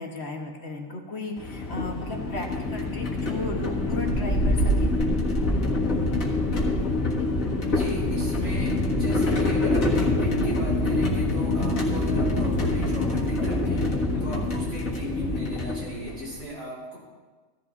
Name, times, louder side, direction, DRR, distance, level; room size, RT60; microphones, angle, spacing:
voice 1, 0.0-4.9 14.1-14.4, left 2 dB, 50° left, 2 dB, 1.5 m, -35 dB
sound 1, 1.4-16.4, left 2 dB, 80° left, 2.1 m, -25 dB
voice 2, 7.7-13.9 14.2-17.0, right 1 dB, 80° right, -5 dB, 4.8 m, -36 dB
16.0 x 14.0 x 2.6 m, 1.4 s
omnidirectional pair, 1.4 m